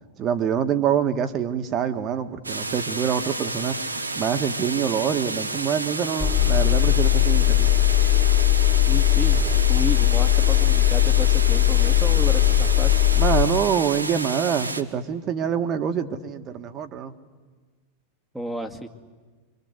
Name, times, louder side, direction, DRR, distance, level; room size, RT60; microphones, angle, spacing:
voice 1, 0.2-3.8 4.1-7.7 13.1-17.1, right 8 dB, 30° right, 8 dB, 1.8 m, -25 dB
sound 1, 2.4-14.8, right 2 dB, 80° right, 1.5 m, -31 dB
Engine, 6.2-13.5, left 15 dB, 15° left, 3.0 m, -19 dB
voice 2, 8.9-13.0 18.3-18.9, right 1 dB, ahead, 3 dB, 2.1 m, -32 dB
27.5 x 25.0 x 8.2 m, 1.4 s
figure-of-eight pair, 90°, 0 cm